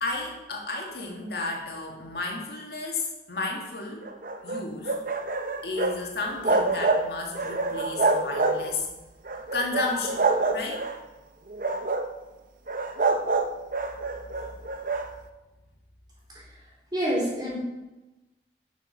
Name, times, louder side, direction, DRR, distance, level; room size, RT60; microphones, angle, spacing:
voice 1, 0.0-4.1 4.4-5.0 5.6-8.9 9.5-10.8, left 3 dB, 65° left, 0 dB, 2.1 m, -33 dB
sound 1, 4.0-6.0 6.3-7.0 7.3-8.8 9.3-11.0 11.5-12.1 12.7-15.1, right 3 dB, 45° right, 0.7 m, -26 dB
voice 2, 16.9-17.6, equal, 25° right, -5 dB, 3.7 m, -26 dB
12.5 x 6.4 x 5.8 m, 1.1 s
head